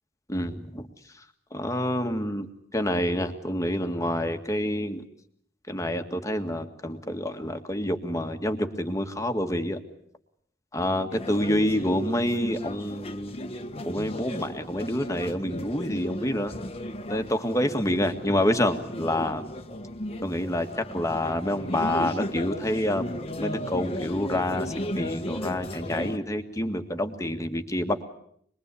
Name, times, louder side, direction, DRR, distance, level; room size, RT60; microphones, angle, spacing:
voice 1, 0.3-0.9 1.5-2.5 2.7-5.0 5.7-9.8 10.7-13.5 13.9-16.5 17.1-19.4 20.2-28.0, left 1 dB, 15° left, 6 dB, 1.9 m, -28 dB
sound 1, 11.1-26.2, left 1 dB, 30° left, 1.4 m, -35 dB
25.5 x 21.5 x 8.4 m, 0.67 s
head